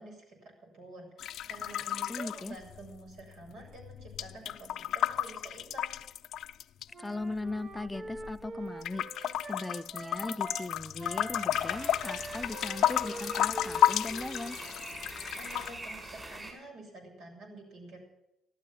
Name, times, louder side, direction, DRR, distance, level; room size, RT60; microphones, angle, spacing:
voice 1, 0.0-5.9 15.4-18.0, right 2 dB, 75° right, 2 dB, 7.0 m, -49 dB
sound 1, 1.2-3.2 3.5-6.8 7.5-8.5 8.8-15.7, left 12 dB, 75° left, 0.5 m, -32 dB
voice 2, 2.1-2.6 7.0-14.6, left 2 dB, 15° left, 10 dB, 0.6 m, -38 dB
Wind instrument woodwind instrument, 6.9-10.7 11.0-15.1, right 2 dB, 45° right, 1.1 m, -44 dB
sound 2, 11.5-16.5, right 1 dB, 20° right, 6.7 m, -44 dB
14.0 x 13.0 x 7.3 m, 0.87 s
cardioid pair, 90°, 0 cm